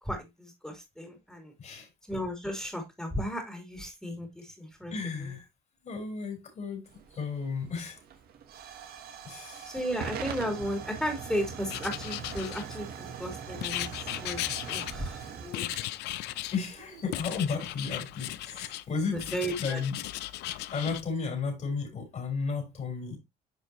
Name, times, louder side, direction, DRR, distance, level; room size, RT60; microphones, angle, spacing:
voice 1, 0.0-1.5 2.1-5.3 9.6-15.7 19.1-19.8, equal, 5° left, 3.0 m, -35 dB
voice 2, 1.6-1.9 4.9-5.5 5.8-8.0 9.2-9.8 16.5-19.3 19.6-20.0 20.7-23.2, left 5 dB, 45° left, 3.9 m, -33 dB
Hiss / Fire / Tick, 6.9-17.3, right 7 dB, 65° right, 1.5 m, -42 dB
Writing, 11.7-13.0 13.6-15.2 15.5-16.6 17.1-18.8 19.2-21.0, left 16 dB, 85° left, 0.6 m, -36 dB
9.7 x 5.1 x 2.9 m
cardioid pair, 110°, 17 cm